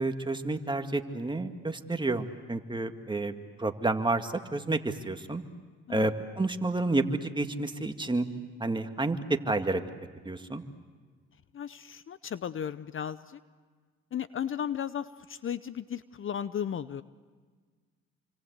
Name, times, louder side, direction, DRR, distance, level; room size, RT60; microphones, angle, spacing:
voice 1, 0.0-5.4 5.9-8.3 8.6-9.8 10.2-10.6, right 2 dB, 15° right, 6 dB, 2.1 m, -30 dB
voice 2, 11.5-13.4 14.1-17.0, left 9 dB, 45° left, 15 dB, 0.8 m, -35 dB
27.5 x 25.5 x 8.2 m, 1.5 s
supercardioid pair, 70°, 30 cm